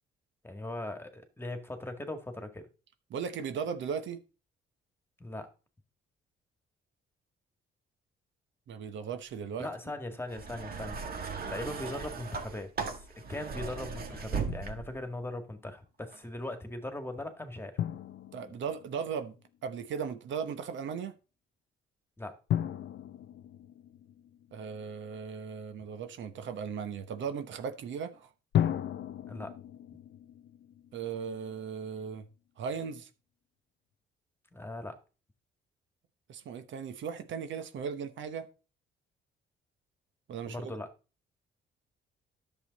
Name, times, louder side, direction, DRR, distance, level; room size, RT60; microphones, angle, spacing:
voice 1, 0.4-2.7 5.2-5.5 9.6-11.0 11.5-17.8 22.2-22.4 25.8-25.9 29.3-29.5 34.5-35.0 40.5-40.9, left 1 dB, 10° left, 1.8 m, -39 dB
voice 2, 3.1-4.2 8.7-9.7 18.3-19.4 19.6-21.2 24.5-28.3 30.9-32.3 32.6-33.1 36.3-38.5 40.3-40.7, right 6 dB, 70° right, 1.0 m, -37 dB
sound 1, 10.3-15.1 16.0-16.2, right 5 dB, 50° right, 1.7 m, -38 dB
Drum, 14.5-15.2 17.8-19.6 22.5-25.0 28.5-31.7, left 10 dB, 65° left, 0.6 m, -35 dB
10.5 x 7.1 x 4.1 m
cardioid pair, 90°, 20 cm